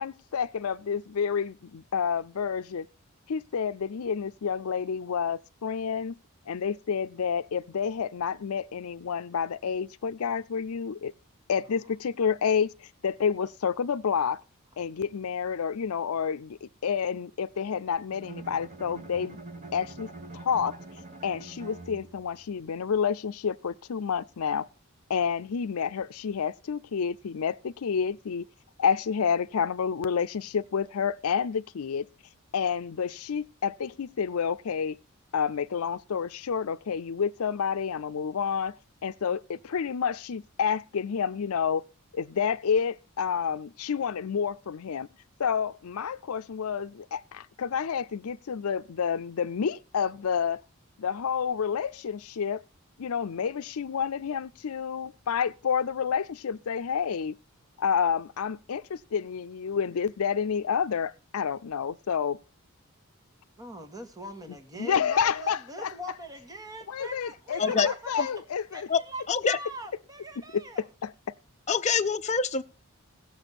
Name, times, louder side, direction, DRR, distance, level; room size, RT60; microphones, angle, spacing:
voice 1, 0.0-2.9 3.3-6.1 6.5-11.1 11.5-12.7 13.0-14.4 14.8-19.4 19.7-20.8 21.2-24.7 25.1-28.5 28.8-32.1 32.5-35.0 35.3-38.8 39.0-41.8 42.1-45.1 45.4-50.6 51.0-52.6 53.0-57.3 57.8-62.4 64.8-65.9 66.9-68.9 71.0-71.3, left 7 dB, 85° left, 0.5 m, -29 dB
Bowed string instrument, 18.1-22.4, right 2 dB, 35° right, 1.2 m, -44 dB
voice 2, 63.6-68.3 68.7-70.9, equal, 15° right, 1.6 m, -42 dB
voice 3, 69.3-69.6 71.7-72.6, left 5 dB, 30° left, 0.7 m, -25 dB
17.0 x 7.1 x 4.1 m
head